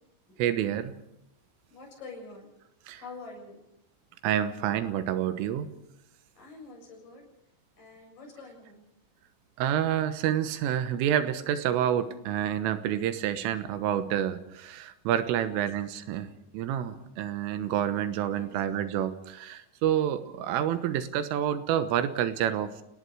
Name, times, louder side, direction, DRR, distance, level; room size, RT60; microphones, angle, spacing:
voice 1, 0.4-1.0 2.9-3.0 4.2-5.7 9.6-22.7, right 10 dB, 80° right, 11 dB, 3.8 m, -28 dB
voice 2, 1.7-2.5 3.0-3.6 6.4-7.2 7.8-8.8 15.4-15.6 18.3-18.5, left 3 dB, 45° left, 1 dB, 8.6 m, -46 dB
29.0 x 18.5 x 4.9 m, 0.83 s
omnidirectional pair, 5.8 m